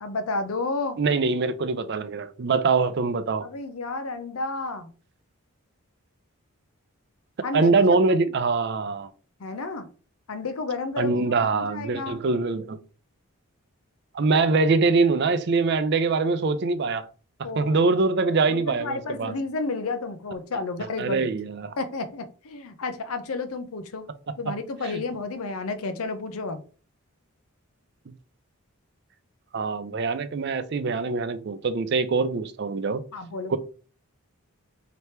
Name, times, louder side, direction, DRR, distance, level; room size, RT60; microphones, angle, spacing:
voice 1, 0.0-1.0 3.4-4.9 7.4-7.7 8.2-8.3 9.4-9.9 10.3-12.3 17.4-18.0 18.5-21.3 21.8-24.1 24.4-26.6 33.1-33.6, left 3 dB, 75° left, 0.6 m, -31 dB
voice 2, 1.0-3.5 7.5-9.1 11.0-12.8 14.1-17.1 17.6-19.3 21.0-21.7 28.1-28.2 29.5-33.0 33.5-33.6, right 4 dB, 50° right, 0.4 m, -23 dB
3.3 x 2.9 x 4.4 m
head